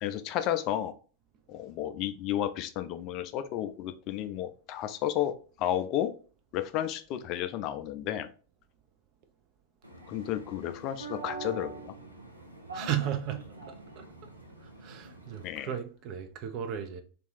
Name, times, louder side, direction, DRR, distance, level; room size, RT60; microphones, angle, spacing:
voice 1, 0.0-0.9 1.5-6.1 6.5-8.3 10.1-11.9 15.4-15.7, left 11 dB, 40° left, 0.3 m, -32 dB
sound 1, 9.8-15.5, right 3 dB, 85° right, 0.6 m, -44 dB
voice 2, 12.7-14.1 14.6-17.0, right 10 dB, 40° right, 0.5 m, -35 dB
2.7 x 2.3 x 4.0 m
figure-of-eight pair, 90°, 0 cm